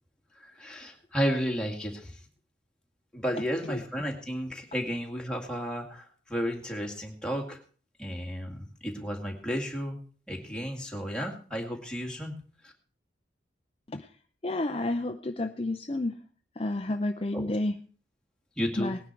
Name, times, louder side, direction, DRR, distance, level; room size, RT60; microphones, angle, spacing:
voice 1, 0.4-2.2 3.1-7.6 8.0-10.0 10.3-12.3 12.6-12.7 17.3-17.5 18.6-19.0, equal, 5° left, -1 dB, 2.2 m, -33 dB
voice 2, 14.4-16.2 16.6-17.7 18.8-19.0, left 2 dB, 30° left, 7 dB, 0.6 m, -30 dB
19.0 x 9.9 x 4.6 m, 0.41 s
head